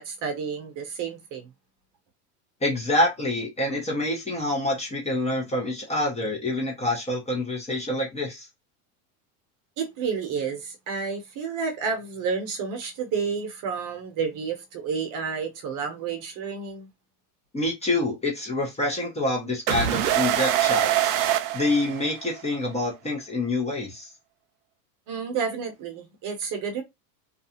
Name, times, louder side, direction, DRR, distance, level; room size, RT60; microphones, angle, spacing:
voice 1, 0.0-1.5 9.8-16.9 25.1-26.8, right 5 dB, 45° right, 0.9 m, -30 dB
voice 2, 2.6-8.5 17.5-21.1 21.5-24.1, left 2 dB, 15° left, 0.7 m, -27 dB
sound 1, 19.7-22.5, right 12 dB, 60° right, 0.5 m, -24 dB
2.4 x 2.3 x 2.7 m
supercardioid pair, 110°, 46 cm